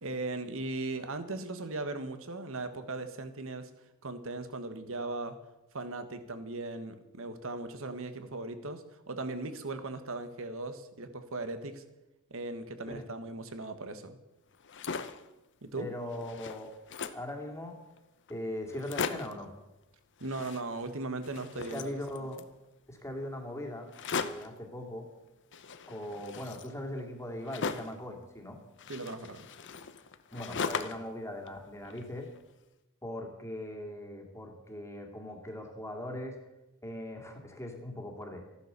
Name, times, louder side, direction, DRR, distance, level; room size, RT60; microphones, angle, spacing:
voice 1, 0.0-3.7 4.0-5.4 5.7-11.8 12.3-14.2 15.6-15.9 20.2-21.9 28.9-29.5, right 2 dB, 65° right, 9 dB, 1.5 m, -38 dB
sound 1, 14.5-15.3 15.8-15.9 16.1-17.3 18.0-18.1 18.3-18.4 18.7-19.4 20.2-21.0 21.2-22.5 23.9-24.6 25.5-28.0 28.8-31.1 31.5-32.4, left 5 dB, 55° left, 0.9 m, -38 dB
voice 2, 15.8-16.7 17.1-17.8 18.3-19.5 21.6-22.4 22.9-25.1 25.9-28.6 30.3-32.3 33.0-36.4 36.8-38.4, left 1 dB, 15° left, 3 dB, 2.4 m, -40 dB
14.5 x 11.5 x 6.8 m, 1.0 s
head